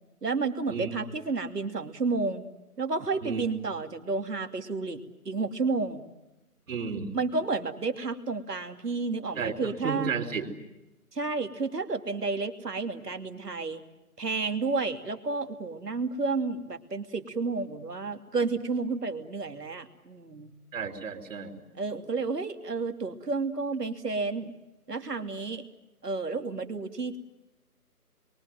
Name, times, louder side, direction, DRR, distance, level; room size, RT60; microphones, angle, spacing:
voice 1, 0.2-2.5 2.8-6.0 7.1-10.1 11.1-13.8 14.2-20.5 21.8-24.5 24.9-25.6 26.0-27.2, right 4 dB, 85° right, 6 dB, 2.9 m, -31 dB
voice 2, 6.7-7.2 9.4-10.5 20.7-21.6, right 5 dB, 55° right, 5 dB, 3.8 m, -33 dB
27.5 x 23.0 x 9.2 m, 0.97 s
figure-of-eight pair, 160°, 46 cm